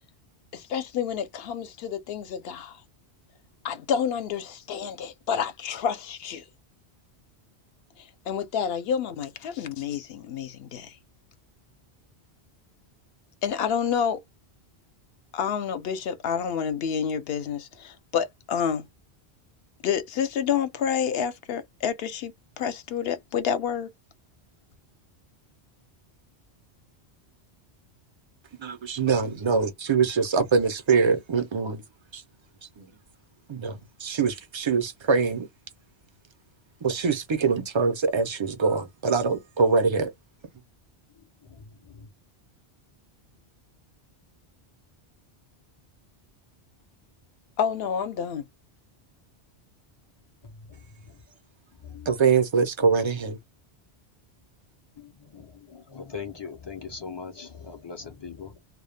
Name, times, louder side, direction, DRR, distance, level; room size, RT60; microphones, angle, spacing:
voice 1, 0.5-2.8 3.6-6.4 8.0-10.9 13.4-14.2 15.3-18.9 19.8-23.9 47.6-48.5, left 7 dB, 70° left, 0.8 m, -29 dB
voice 2, 28.6-31.8 32.1-32.2 32.8-32.9 33.5-35.5 36.8-40.1 52.1-53.4, right 5 dB, 50° right, 0.3 m, -24 dB
voice 3, 55.0-58.6, left 5 dB, 45° left, 0.3 m, -40 dB
2.2 x 2.1 x 3.1 m
omnidirectional pair, 1.1 m